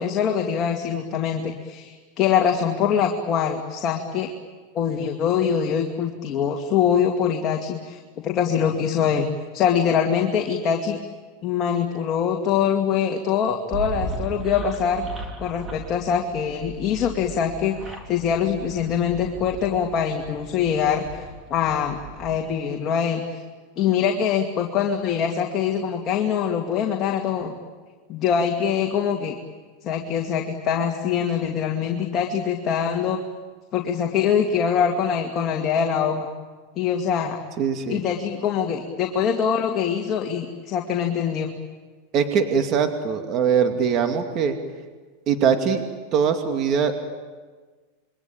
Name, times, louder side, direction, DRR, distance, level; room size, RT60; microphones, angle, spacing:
voice 1, 0.0-4.3 4.7-9.3 9.5-11.0 11.4-15.1 15.4-21.2 21.5-23.4 23.8-27.5 28.1-29.4 29.8-33.2 33.7-36.3 36.8-37.4 37.9-41.5, left 8 dB, 35° left, 2 dB, 2.4 m, -23 dB
sound 1, 13.7-22.4, right 3 dB, 20° right, 3.8 m, -37 dB
voice 2, 37.6-38.0 42.1-44.5 45.3-45.8 46.1-47.0, right 7 dB, 40° right, 5 dB, 2.4 m, -22 dB
28.0 x 23.0 x 8.9 m, 1.4 s
supercardioid pair, 130°, 0 cm